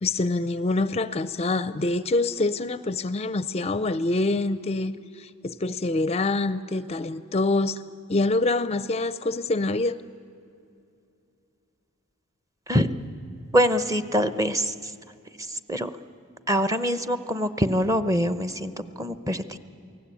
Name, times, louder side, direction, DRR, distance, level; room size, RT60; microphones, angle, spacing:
voice 1, 0.0-7.8 8.1-10.0, left 2 dB, 30° left, 15 dB, 0.5 m, -25 dB
voice 2, 12.7-13.1 13.5-14.9 15.4-15.9 16.5-18.7 19.0-19.6, equal, 15° right, 12 dB, 0.8 m, -24 dB
28.5 x 19.0 x 8.4 m, 2.6 s
head